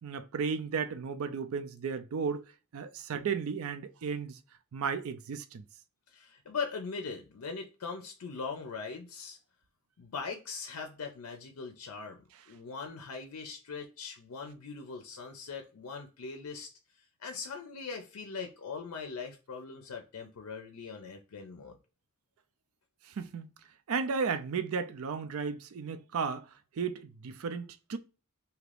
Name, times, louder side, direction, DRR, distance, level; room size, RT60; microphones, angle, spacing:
voice 1, 0.0-2.4 2.7-4.4 4.7-5.6 23.2-23.5 23.9-26.5 26.8-28.0, right 5 dB, 70° right, 0.4 m, -34 dB
voice 2, 6.1-9.4 10.0-12.2 12.5-16.7 17.2-21.8, left 5 dB, 80° left, 0.5 m, -40 dB
2.8 x 2.4 x 3.2 m
head